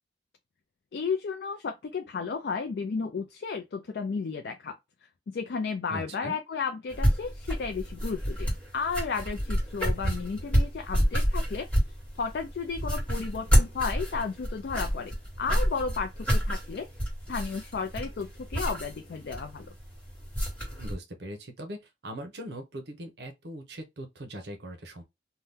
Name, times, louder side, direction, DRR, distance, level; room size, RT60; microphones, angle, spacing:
voice 1, 0.9-4.7 5.3-11.7 12.2-16.9 17.3-19.7, left 5 dB, 65° left, 0.4 m, -33 dB
voice 2, 5.9-6.4 20.8-25.0, right 1 dB, 65° right, 0.7 m, -40 dB
sound 1, 6.9-20.9, equal, 5° left, 1.4 m, -29 dB
2.8 x 2.2 x 3.5 m
head